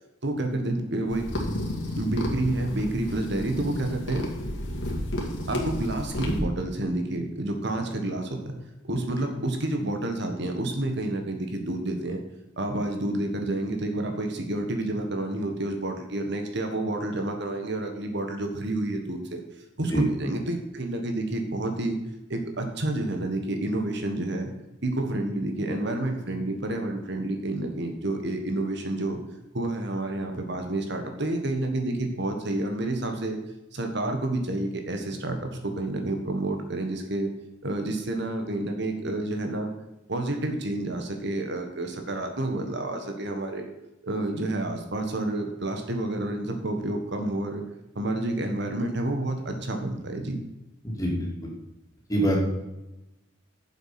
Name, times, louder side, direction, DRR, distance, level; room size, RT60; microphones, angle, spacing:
voice 1, 0.2-1.3 1.9-4.3 5.5-8.5 8.8-12.2 12.6-19.4 19.8-22.0 22.3-24.5 24.8-29.2 29.5-33.4 33.7-35.5 35.8-37.3 37.6-39.7 40.1-43.7 44.0-47.6 47.9-50.4, right 1 dB, 55° right, 4 dB, 1.5 m, -29 dB
sound 1, 1.1-6.4, left 1 dB, 60° left, 2.5 m, -32 dB
voice 2, 50.8-51.5 52.1-52.4, right 1 dB, 15° left, -2 dB, 2.9 m, -25 dB
10.5 x 7.5 x 5.9 m, 0.95 s
head